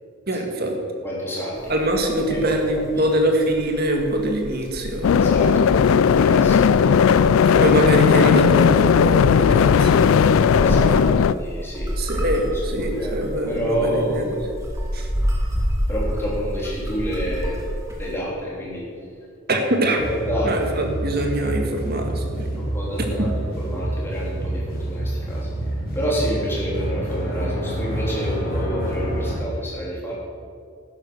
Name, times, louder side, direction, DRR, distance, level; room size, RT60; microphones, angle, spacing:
voice 1, 0.3-0.8 1.7-5.1 7.5-10.1 10.9-11.0 12.0-14.3 14.9-15.1 19.5-20.0 20.4-22.6, right 1 dB, 45° right, 3 dB, 1.8 m, -23 dB
voice 2, 1.0-1.7 2.3-3.1 5.2-7.2 10.6-11.9 12.8-13.2 13.5-14.2 15.9-17.6 18.0-18.9 20.0-20.6 22.5-25.5 25.9-30.1, equal, 10° left, -6 dB, 3.5 m, -29 dB
sound 1, 1.6-18.2, equal, 15° right, 1.9 m, -30 dB
sound 2, 5.0-11.3, left 6 dB, 75° left, 0.3 m, -16 dB
sound 3, 20.0-29.3, right 1 dB, 45° left, 3.8 m, -27 dB
12.0 x 10.0 x 6.4 m, 2.2 s
head